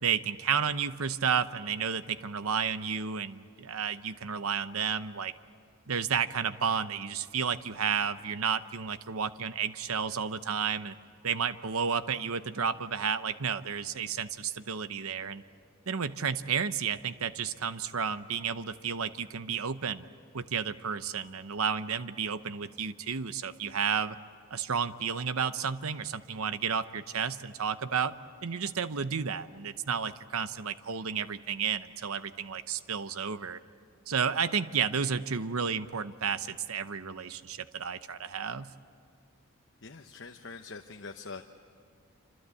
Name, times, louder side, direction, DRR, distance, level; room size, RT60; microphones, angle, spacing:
voice 1, 0.0-5.3 5.9-10.9 11.2-15.4 15.9-20.1 20.3-24.2 24.5-28.1 28.4-33.6 34.1-38.7, right 6 dB, 80° right, 13 dB, 0.8 m, -32 dB
voice 2, 39.8-41.4, left 4 dB, 55° left, 4 dB, 1.0 m, -44 dB
27.0 x 26.0 x 8.4 m, 2.2 s
head